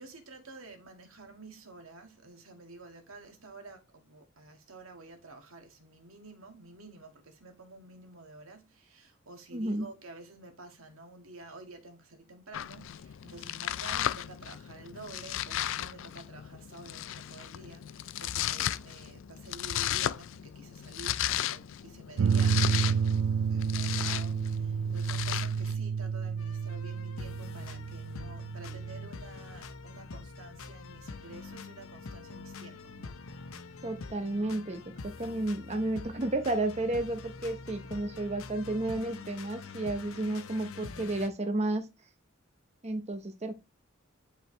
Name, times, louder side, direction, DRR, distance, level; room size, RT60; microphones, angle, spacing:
voice 1, 0.0-23.1 23.5-33.2, right 3 dB, 90° right, 2.0 m, -50 dB
voice 2, 9.5-9.9 33.8-41.9 42.8-43.5, right 2 dB, 35° right, 1.0 m, -32 dB
Domestic sounds home sounds, 12.5-25.8, left 11 dB, 65° left, 0.4 m, -35 dB
sound 1, 22.2-29.1, right 6 dB, 65° right, 0.3 m, -30 dB
sound 2, 26.4-41.3, left 4 dB, 90° left, 0.8 m, -45 dB
10.5 x 4.9 x 3.3 m
head